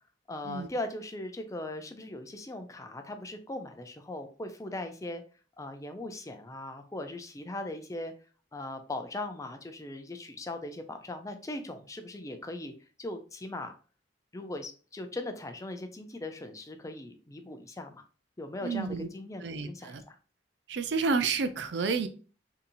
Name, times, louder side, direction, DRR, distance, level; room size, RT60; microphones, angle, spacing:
voice 1, 0.3-5.2 5.6-8.1 8.5-12.7 13.0-13.7 14.3-18.0 18.4-20.2, left 2 dB, 20° left, 7 dB, 0.4 m, -39 dB
voice 2, 18.6-19.1 19.4-20.0 20.7-22.1, right 4 dB, 75° right, 10 dB, 0.5 m, -30 dB
4.0 x 2.8 x 2.6 m, 0.38 s
head